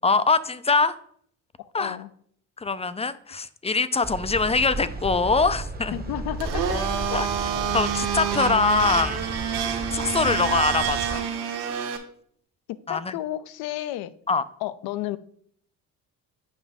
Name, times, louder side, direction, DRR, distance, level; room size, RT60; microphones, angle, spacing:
voice 1, 0.0-1.0 1.7-2.0 2.6-6.0 7.1-7.3 7.7-9.2 9.9-11.3 12.9-13.1 14.3-14.4, left 4 dB, 15° left, 0.4 m, -23 dB
voice 2, 1.6-2.1 5.9-6.8 7.1-7.2 7.5-7.6 12.7-14.1 14.6-15.2, left 14 dB, 70° left, 0.6 m, -32 dB
sound 1, 4.0-11.2, right 2 dB, 25° right, 1.0 m, -34 dB
Domestic sounds home sounds, 6.4-12.0, right 7 dB, 75° right, 1.2 m, -28 dB
7.3 x 5.2 x 3.5 m
supercardioid pair, 65°, 39 cm